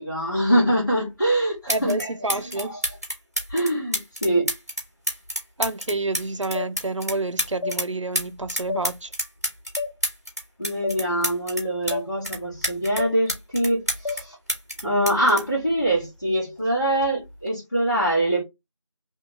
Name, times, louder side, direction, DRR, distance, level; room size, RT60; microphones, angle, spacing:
voice 1, 0.0-2.8 3.5-4.5 10.6-14.4 14.8-18.4, right 1 dB, 35° left, 1.7 m, -24 dB
sound 1, 1.2-1.3 1.7-2.0 2.3-7.9 8.1-12.0 12.2-14.2 14.5-16.3 17.3-17.5, equal, 30° right, 1.2 m, -29 dB
voice 2, 1.7-2.7 5.6-9.1 14.8-15.2, right 2 dB, 70° right, 0.5 m, -29 dB
sound 2, 6.5-6.7 7.6-7.8 8.7-8.8 9.8-9.9 10.8-11.0 11.9-12.1 13.0-13.1 14.0-14.2, left 4 dB, 65° left, 0.7 m, -28 dB
3.4 x 3.0 x 3.2 m
figure-of-eight pair, 180°, 16 cm